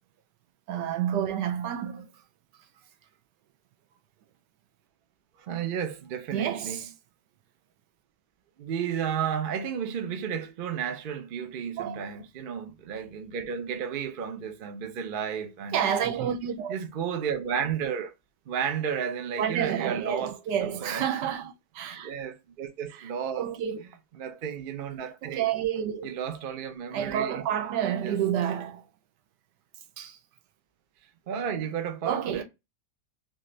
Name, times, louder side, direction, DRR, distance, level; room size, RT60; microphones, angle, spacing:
voice 1, 0.7-2.1 6.3-6.9 11.8-12.0 15.7-16.7 19.4-22.1 23.4-23.8 25.2-26.1 26.9-28.8 30.0-30.2 32.0-32.4, right 9 dB, 85° right, 1.3 m, -29 dB
voice 2, 5.5-6.8 8.6-16.0 16.7-18.1 18.5-21.1 22.0-23.5 23.8-23.9 24.2-25.5 26.0-27.4 27.8-28.2 31.3-32.4, right 7 dB, 60° right, 0.5 m, -33 dB
4.1 x 2.5 x 3.1 m
omnidirectional pair, 1.8 m